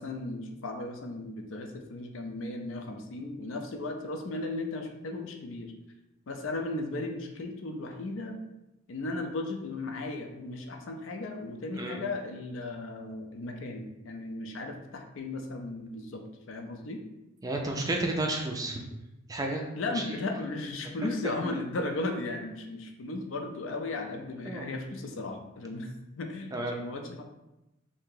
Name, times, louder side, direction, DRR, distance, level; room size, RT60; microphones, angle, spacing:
voice 1, 0.0-5.7 6.3-8.4 8.9-17.0 19.8-27.2, left 2 dB, 65° left, 4 dB, 0.5 m, -36 dB
voice 2, 17.4-18.8 19.3-20.0 24.5-24.8 26.5-26.8, right 2 dB, 15° right, 1 dB, 0.3 m, -32 dB
2.8 x 2.7 x 3.7 m, 0.94 s
head